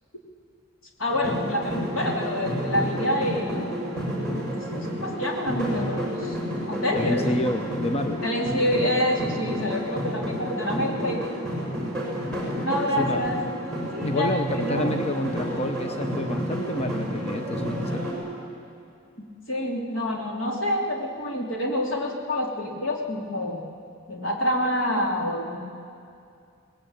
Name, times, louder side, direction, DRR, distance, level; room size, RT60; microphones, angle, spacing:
voice 1, 1.0-6.4 6.7-7.3 8.2-11.3 12.6-13.4 13.9-14.3 14.6-14.9 19.2-23.7 24.1-25.6, left 1 dB, 75° left, 0 dB, 3.2 m, -27 dB
sound 1, 1.1-18.1, equal, 5° left, 7.0 m, -30 dB
voice 2, 6.9-8.2 13.0-13.2 14.0-18.1, left 1 dB, 30° left, 6 dB, 0.7 m, -29 dB
23.0 x 19.5 x 9.0 m, 2.4 s
head